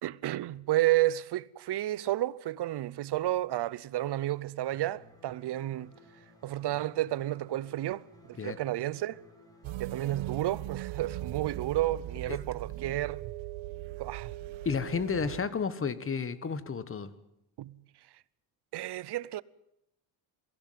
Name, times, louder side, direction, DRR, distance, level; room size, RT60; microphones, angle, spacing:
voice 1, 0.0-6.0 6.4-9.2 9.8-13.3 14.0-14.3 17.6-17.8 18.7-19.4, right 15 dB, 60° right, 0.8 m, -31 dB
sound 1, 4.7-10.3, left 1 dB, 10° left, 6.2 m, -57 dB
sound 2, 9.6-15.4, right 14 dB, 80° right, 1.2 m, -39 dB
voice 2, 14.6-17.1, left 5 dB, 30° left, 1.4 m, -32 dB
22.0 x 16.5 x 9.4 m
cardioid pair, 130°, 46 cm